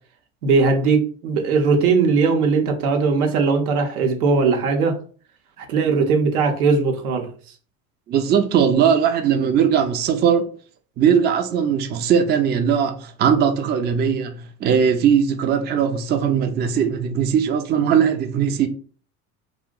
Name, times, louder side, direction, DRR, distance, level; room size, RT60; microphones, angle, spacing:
voice 1, 0.4-5.0 5.6-7.3, right 4 dB, 80° right, 0.8 m, -19 dB
voice 2, 8.1-10.5 11.0-18.7, right 7 dB, 25° right, 0.4 m, -19 dB
2.5 x 2.1 x 3.7 m
hypercardioid pair, 80°, 43 cm